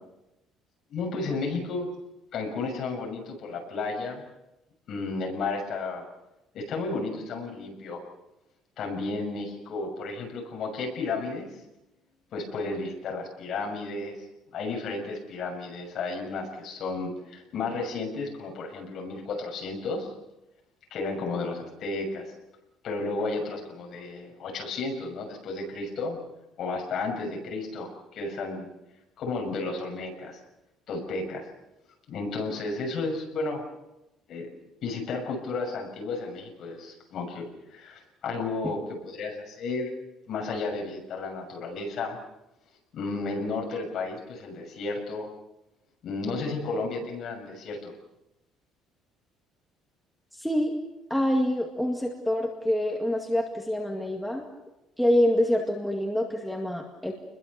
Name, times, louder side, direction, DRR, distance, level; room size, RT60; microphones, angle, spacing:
voice 1, 0.9-1.9 2.3-4.2 4.9-6.0 6.5-8.0 8.8-11.6 12.3-14.3 14.5-20.1 20.9-22.3 22.8-26.2 26.6-28.7 29.2-30.4 30.9-31.5 32.1-33.6 34.3-34.5 34.8-39.9 40.3-42.2 42.9-45.3 46.0-47.9, left 3 dB, 45° left, 1 dB, 6.7 m, -33 dB
voice 2, 50.3-50.8 51.1-54.4 55.0-57.1, left 1 dB, ahead, 0 dB, 2.1 m, -26 dB
29.0 x 21.5 x 6.9 m, 0.94 s
cardioid pair, 175°, 0 cm